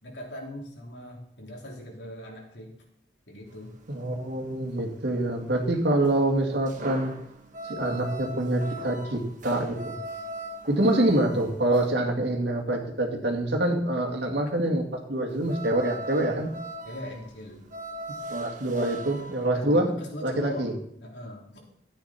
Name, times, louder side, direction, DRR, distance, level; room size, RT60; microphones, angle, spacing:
voice 1, 0.0-2.7 3.3-3.7 16.3-16.5 16.8-17.7 19.5-20.7 21.0-21.6, left 1 dB, 80° left, -1 dB, 3.2 m, -40 dB
sound 1, 3.5-11.9 15.3-19.5, right 1 dB, 45° right, 1.4 m, -40 dB
voice 2, 3.9-7.1 7.7-10.0 10.7-16.5 18.3-19.9 20.2-20.7, right 1 dB, 75° right, 1 dB, 2.1 m, -26 dB
13.5 x 8.8 x 4.3 m, 0.72 s
head